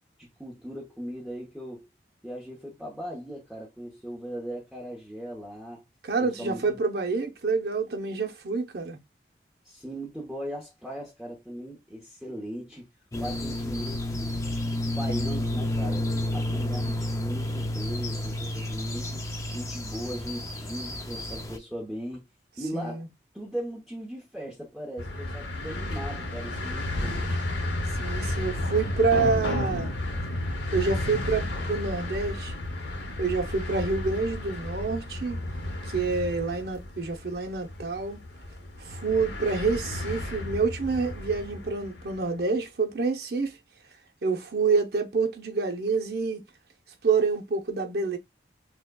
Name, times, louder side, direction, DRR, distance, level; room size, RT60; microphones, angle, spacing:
voice 1, 0.2-1.9 2.2-5.8 6.2-6.8 9.6-12.9 13.2-14.4 14.7-16.0 16.3-22.2 22.6-23.0 23.3-27.3, equal, ahead, 0.9 m, -38 dB
voice 2, 6.0-9.0 22.7-23.1 28.0-29.9 30.7-32.5 33.2-35.4 35.9-38.2 38.8-43.6 44.2-46.4 47.0-48.2, right 4 dB, 55° right, 0.7 m, -27 dB
sound 1, 13.1-21.6, left 1 dB, 15° left, 0.4 m, -30 dB
sound 2, 25.0-42.2, left 1 dB, 75° left, 0.9 m, -32 dB
6.1 x 2.2 x 2.3 m
head